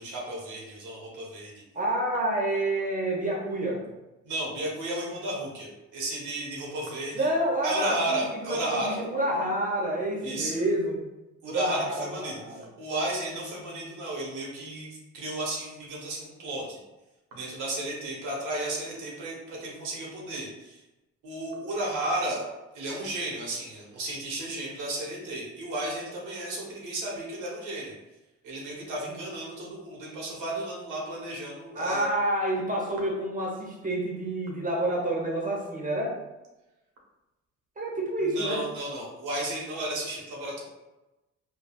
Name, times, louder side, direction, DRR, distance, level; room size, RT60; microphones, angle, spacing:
voice 1, 0.0-1.5 4.2-7.3 7.6-9.0 10.2-10.6 11.4-16.8 17.3-20.8 21.2-22.4 22.7-27.9 28.4-32.1 38.2-40.6, right 1 dB, 85° right, -2 dB, 1.0 m, -33 dB
voice 2, 1.7-3.8 7.1-11.0 11.4-12.7 31.7-36.2 37.8-38.7, right 1 dB, 25° right, -2 dB, 1.0 m, -28 dB
3.4 x 2.2 x 2.3 m, 1.0 s
cardioid pair, 90°, 30 cm